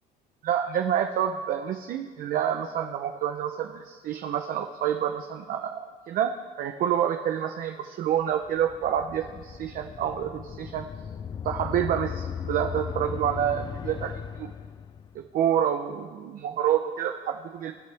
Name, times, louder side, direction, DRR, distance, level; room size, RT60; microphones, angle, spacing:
voice 1, 0.4-10.9 11.4-14.5 15.1-17.7, right 9 dB, 60° right, 6 dB, 0.8 m, -28 dB
sound 1, 8.3-15.3, left 7 dB, 25° left, 0.4 m, -37 dB
25.5 x 11.0 x 3.5 m, 1.5 s
cardioid pair, 135°, 17 cm